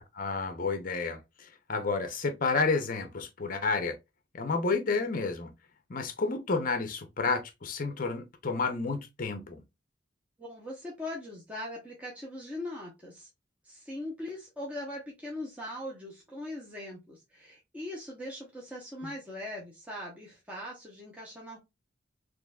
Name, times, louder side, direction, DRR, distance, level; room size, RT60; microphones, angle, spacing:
voice 1, 0.2-1.2 1.7-3.9 4.3-5.5 5.9-9.6, left 4 dB, 45° left, 0.6 m, -30 dB
voice 2, 10.4-13.3 13.6-21.6, left 1 dB, 5° right, 0.8 m, -40 dB
3.8 x 3.0 x 2.2 m
head